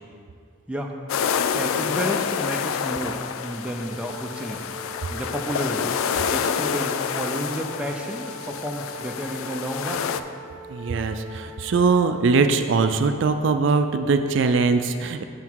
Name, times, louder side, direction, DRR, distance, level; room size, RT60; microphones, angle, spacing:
sound 1, 1.1-10.2, left 7 dB, 85° left, 0.3 m, -28 dB
voice 1, 1.5-4.7 5.1-6.0 6.3-10.1, equal, 5° right, 1 dB, 0.4 m, -31 dB
sound 2, 3.7-12.2, right 1 dB, 40° right, 1.0 m, -42 dB
voice 2, 10.7-15.2, right 4 dB, 65° right, 8 dB, 0.4 m, -21 dB
7.1 x 5.7 x 4.6 m, 2.2 s
head